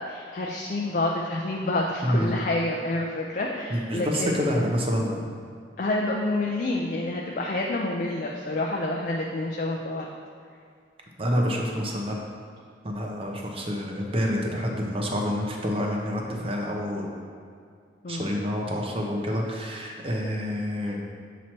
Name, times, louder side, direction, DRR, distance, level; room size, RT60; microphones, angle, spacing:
voice 1, 0.0-4.7 5.8-10.1 18.0-18.2, left 2 dB, 45° left, -1 dB, 0.4 m, -28 dB
voice 2, 2.0-2.4 3.7-5.2 11.2-12.2 12.8-17.1 18.1-21.0, equal, 30° right, 0 dB, 0.7 m, -27 dB
7.3 x 3.1 x 4.3 m, 2.2 s
head